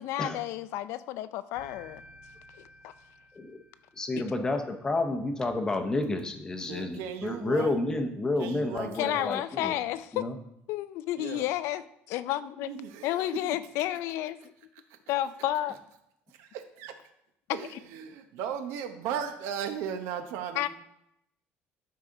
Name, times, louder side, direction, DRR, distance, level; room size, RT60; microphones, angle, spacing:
voice 1, 0.0-2.0 2.8-2.9 8.9-10.3 10.7-12.7 13.0-14.4 15.1-15.8 17.5-17.8 20.5-20.7, left 13 dB, 70° left, 14 dB, 0.4 m, -31 dB
sound 1, 1.5-4.4, equal, 35° right, 0.9 m, -54 dB
voice 2, 4.0-9.8 10.1-10.3, left 2 dB, 15° left, 6 dB, 0.7 m, -30 dB
voice 3, 6.7-7.7 8.4-9.3 11.2-11.5 12.6-13.6 16.4-16.9 17.5-20.7, right 8 dB, 80° right, 8 dB, 0.9 m, -36 dB
12.0 x 4.8 x 3.8 m, 0.78 s
cardioid pair, 165°, 5 cm